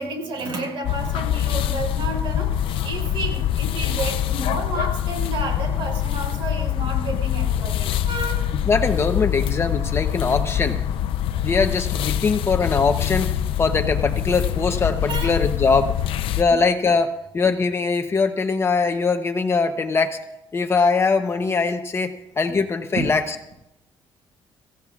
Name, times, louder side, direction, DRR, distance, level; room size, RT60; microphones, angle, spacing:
voice 1, 0.0-8.4 15.1-15.3 16.5-16.6 22.9-23.1, right 2 dB, 70° right, 1 dB, 5.7 m, -31 dB
sound 1, 0.8-16.4, left 10 dB, 80° left, 0.6 m, -24 dB
voice 2, 8.7-10.8 11.4-13.3 13.6-15.9 16.4-20.2 20.5-23.4, left 4 dB, 30° left, 6 dB, 0.8 m, -21 dB
25.5 x 15.5 x 2.4 m, 0.87 s
cardioid pair, 135°, 9 cm